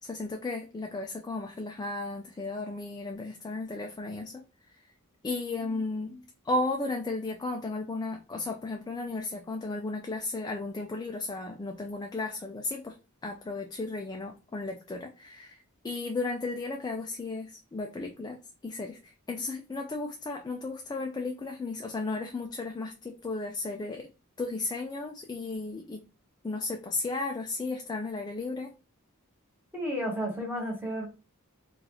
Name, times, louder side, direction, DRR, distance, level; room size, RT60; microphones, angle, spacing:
voice 1, 0.0-4.8 5.2-12.9 13.2-18.4 18.6-24.1 24.4-26.0 26.4-28.7, left 3 dB, 20° left, 3 dB, 0.3 m, -34 dB
voice 2, 29.7-31.1, equal, 10° right, -3 dB, 1.4 m, -32 dB
2.9 x 2.4 x 3.9 m, 0.32 s
head